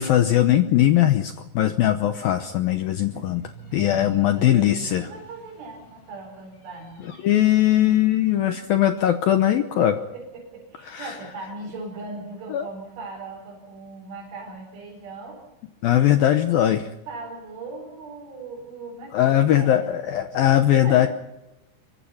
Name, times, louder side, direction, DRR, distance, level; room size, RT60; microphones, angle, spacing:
voice 1, 0.0-3.4 3.7-5.1 7.2-10.0 10.9-11.1 12.5-12.6 15.8-16.9 19.1-21.1, left 12 dB, 85° left, 8 dB, 2.1 m, -20 dB
sound 1, 2.6-8.5, equal, 45° left, 5.7 m, -43 dB
voice 2, 3.1-7.2 8.4-8.6 9.6-15.4 17.1-20.3 20.8-21.1, right 3 dB, 80° right, -1 dB, 7.1 m, -39 dB
25.5 x 23.5 x 5.7 m, 0.97 s
omnidirectional pair, 5.5 m